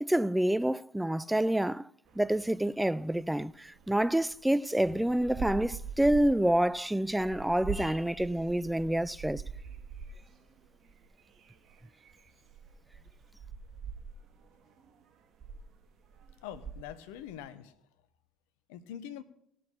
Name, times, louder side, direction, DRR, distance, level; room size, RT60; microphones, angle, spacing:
voice 1, 0.0-1.9 2.2-9.4, right 1 dB, 5° right, 0.4 m, -28 dB
sound 1, 2.0-4.5 4.8-17.4, right 5 dB, 50° right, 1.6 m, -45 dB
voice 2, 16.4-17.8 18.7-19.2, left 10 dB, 75° left, 0.9 m, -43 dB
17.5 x 6.7 x 5.3 m
hypercardioid pair, 60°, 0 cm